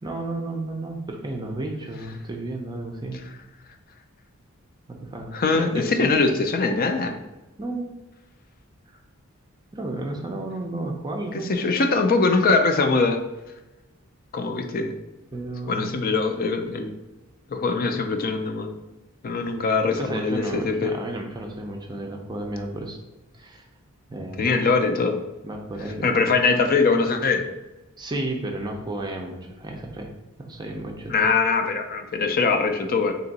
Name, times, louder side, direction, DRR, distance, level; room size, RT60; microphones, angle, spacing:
voice 1, 0.0-3.2 4.9-6.1 7.6-7.9 8.9-9.0 9.7-11.5 15.3-16.1 20.0-23.0 23.3-23.7 24.1-24.4 25.4-26.2 28.0-30.1 30.4-31.2, right 2 dB, 20° right, 2 dB, 0.5 m, -32 dB
voice 2, 5.3-7.2 11.3-13.2 14.3-15.0 15.7-17.0 17.5-18.8 19.2-20.9 24.4-25.2 26.0-27.4 31.1-33.1, left 4 dB, 45° left, 6 dB, 0.4 m, -22 dB
3.4 x 2.9 x 4.0 m, 1.1 s
head